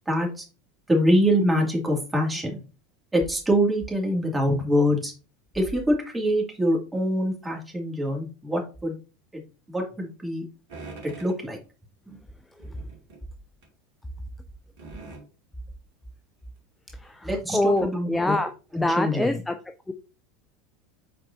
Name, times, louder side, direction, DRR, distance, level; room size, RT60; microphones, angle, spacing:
voice 1, 0.1-0.4 0.9-2.6 3.1-5.1 5.5-9.0 9.3-9.4 9.7-10.4 11.0-11.6 17.2-18.4 18.8-19.4, equal, 10° right, 2.5 m, -24 dB
sound 1, 10.7-11.4 12.6-13.2 13.6-13.7 14.8-15.3 16.6-16.7 17.1-17.2 17.8-17.9, right 3 dB, 55° right, 2.4 m, -43 dB
voice 2, 16.9-19.6 19.9-20.0, left 1 dB, 10° left, 0.5 m, -26 dB
7.3 x 4.6 x 2.8 m
figure-of-eight pair, 80°, 0 cm